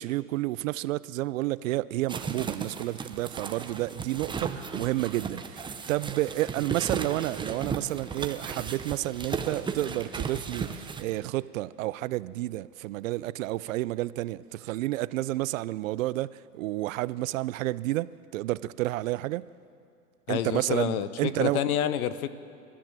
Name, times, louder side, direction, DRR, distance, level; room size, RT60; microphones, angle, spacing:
voice 1, 0.0-19.5 20.3-21.6, right 17 dB, 55° right, 0.6 m, -30 dB
sound 1, 2.1-11.0, right 5 dB, 10° right, 0.9 m, -35 dB
voice 2, 20.3-22.3, left 10 dB, 65° left, 1.2 m, -28 dB
29.0 x 14.0 x 7.5 m
hypercardioid pair, 120°, 48 cm